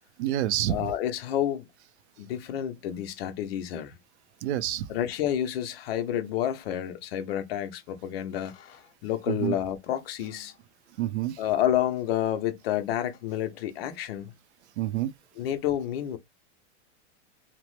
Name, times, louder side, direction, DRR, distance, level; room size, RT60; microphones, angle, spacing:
voice 1, 0.2-0.8 4.4-4.9 9.3-9.5 11.0-11.4 14.8-15.1, right 13 dB, 70° right, 0.5 m, -27 dB
voice 2, 0.7-1.7 2.2-4.0 4.9-10.6 11.4-14.3 15.4-16.2, left 11 dB, 55° left, 0.6 m, -29 dB
2.9 x 2.0 x 3.1 m
supercardioid pair, 165°, 36 cm